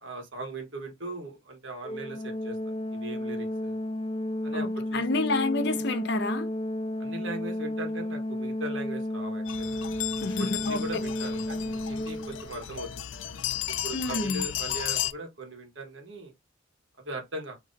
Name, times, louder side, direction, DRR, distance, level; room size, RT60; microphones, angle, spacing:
voice 1, 0.0-2.6 2.9-3.8 4.4-5.3 5.6-5.8 7.0-9.9 10.4-13.1 13.7-16.3 17.0-17.6, right 2 dB, 75° right, 1.4 m, -39 dB
Organ, 1.8-12.7, left 1 dB, 30° left, 0.4 m, -32 dB
voice 2, 4.5-6.5 10.2-11.0 13.9-14.5, left 2 dB, 65° left, 0.8 m, -29 dB
sound 1, 9.5-15.1, left 12 dB, 85° left, 0.5 m, -34 dB
3.8 x 3.1 x 4.0 m
head